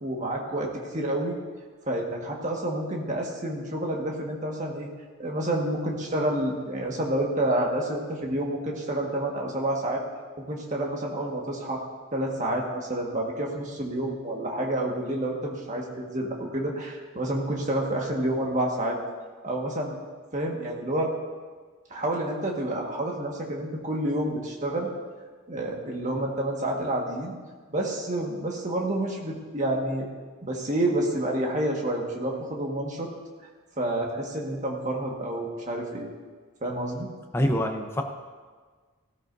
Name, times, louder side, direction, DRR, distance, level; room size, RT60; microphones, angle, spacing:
voice 1, 0.0-1.4 1.9-4.9 5.2-10.0 10.5-11.8 12.1-19.0 19.4-19.9 20.3-21.1 21.9-24.9 25.5-27.3 27.7-30.1 30.4-33.1 33.8-36.1 36.6-37.1, right 1 dB, 35° right, -1 dB, 1.7 m, -29 dB
voice 2, 37.3-38.0, equal, 10° left, 3 dB, 0.8 m, -25 dB
17.0 x 13.5 x 2.7 m, 1.5 s
head